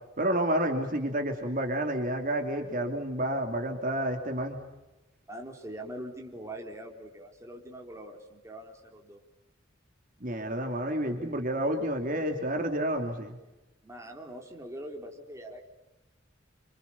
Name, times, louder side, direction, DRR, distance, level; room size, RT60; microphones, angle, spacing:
voice 1, 0.2-4.6 10.2-13.4, right 1 dB, 45° right, 4 dB, 2.9 m, -30 dB
voice 2, 5.3-9.2 13.8-15.6, right 1 dB, 15° right, 1 dB, 3.7 m, -43 dB
28.0 x 27.0 x 7.1 m, 1.0 s
head